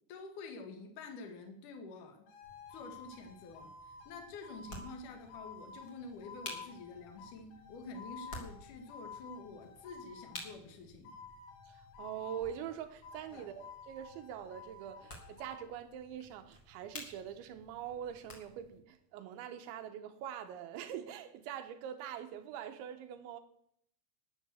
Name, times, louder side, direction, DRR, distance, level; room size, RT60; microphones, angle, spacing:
voice 1, 0.1-2.3 2.7-11.1 13.3-13.5, left 3 dB, 50° left, 2.8 m, -48 dB
sound 1, 2.3-10.6 11.0-12.7 13.0-15.7, left 5 dB, 85° left, 4.5 m, -52 dB
sound 2, 2.4-18.8, left 1 dB, 30° left, 2.4 m, -53 dB
voice 2, 11.7-23.4, right 9 dB, 80° right, 2.9 m, -44 dB
14.0 x 9.9 x 7.0 m
omnidirectional pair, 5.9 m